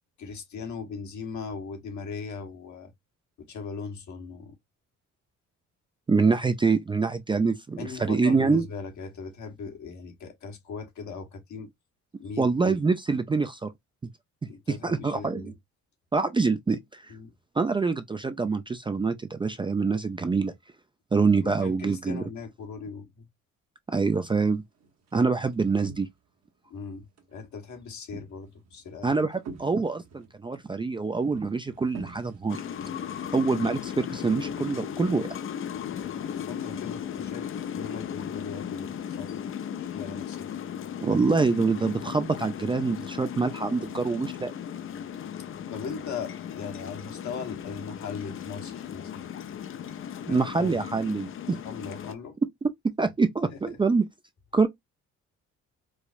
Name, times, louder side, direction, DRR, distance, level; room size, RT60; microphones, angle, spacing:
voice 1, 0.2-2.9 3.4-4.6 7.8-11.7 12.2-12.8 14.5-15.5 17.1-17.3 21.4-23.2 26.7-29.1 35.9-39.4 39.8-40.5 45.7-49.3 50.3-50.7 51.6-52.4 53.5-53.6, left 5 dB, 70° left, 1.2 m, -39 dB
voice 2, 6.1-8.6 12.4-13.7 14.7-15.5 16.1-17.1 17.6-20.5 21.1-22.2 23.9-24.6 25.1-26.1 29.0-32.6 33.3-35.3 41.0-44.5 50.3-51.6 52.6-54.0 54.5-54.7, right 4 dB, 15° right, 0.3 m, -25 dB
sound 1, 24.5-26.5 26.8-27.4 27.8-33.7, right 4 dB, 60° right, 1.0 m, -46 dB
sound 2, 32.5-52.2, left 9 dB, 45° left, 0.5 m, -36 dB
4.8 x 2.0 x 2.5 m
cardioid pair, 90°, 30 cm